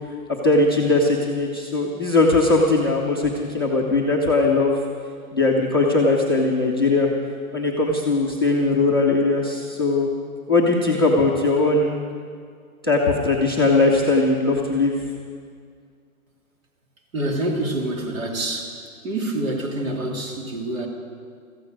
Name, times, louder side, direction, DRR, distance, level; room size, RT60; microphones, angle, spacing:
voice 1, 0.4-4.8 5.3-7.1 7.5-10.1 10.5-12.0 12.8-15.0, left 3 dB, 15° left, -2 dB, 0.5 m, -19 dB
voice 2, 17.1-18.8 19.0-20.9, right 1 dB, 65° right, 0 dB, 3.2 m, -26 dB
16.0 x 14.5 x 5.2 m, 2.1 s
hypercardioid pair, 175°, 43 cm